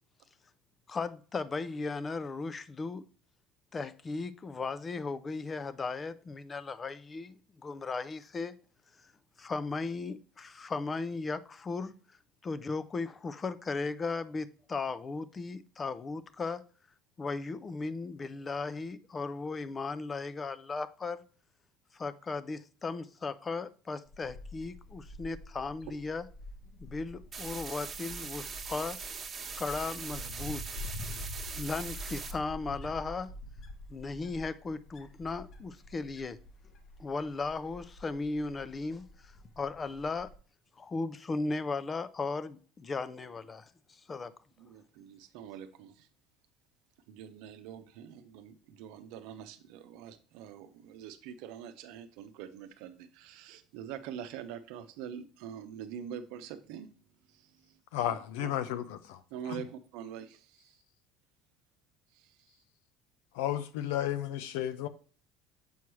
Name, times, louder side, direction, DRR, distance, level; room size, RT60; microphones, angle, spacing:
voice 1, 0.9-3.1 3.7-8.6 9.0-9.1 9.4-11.9 12.4-16.6 17.2-21.2 21.9-26.3 26.8-29.0 29.6-30.6 31.5-33.3 33.9-36.4 37.0-40.3 40.8-44.3, left 3 dB, 30° left, 0.6 m, -36 dB
Wind, 24.1-40.4, left 2 dB, 45° left, 1.0 m, -46 dB
sound 1, 27.3-32.3, right 6 dB, 35° right, 1.3 m, -41 dB
voice 2, 44.6-46.1 47.1-56.9 57.3-57.8 58.1-58.5 59.3-60.8 62.1-62.4, right 9 dB, 75° right, 0.7 m, -45 dB
voice 3, 57.9-59.2 63.3-64.9, left 12 dB, 80° left, 0.6 m, -33 dB
7.1 x 4.6 x 3.1 m
supercardioid pair, 85°, 0 cm